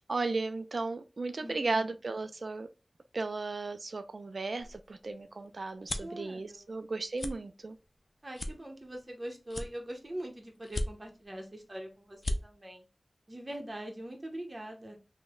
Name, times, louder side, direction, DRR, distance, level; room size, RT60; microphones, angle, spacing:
voice 1, 0.1-2.7 3.1-7.8, right 3 dB, 75° right, 0.3 m, -35 dB
voice 2, 1.4-1.9 6.0-6.7 8.2-12.8 13.3-15.0, right 1 dB, 40° right, 0.8 m, -42 dB
sound 1, 4.6-6.2 6.7-6.9 7.1-7.3 7.8-7.9 8.3-9.1 9.5-10.2 10.6-11.3 11.7-11.8 12.1-12.4, left 1 dB, 60° left, 0.4 m, -36 dB
3.0 x 2.1 x 3.6 m
wide cardioid pair, 45°, 0 cm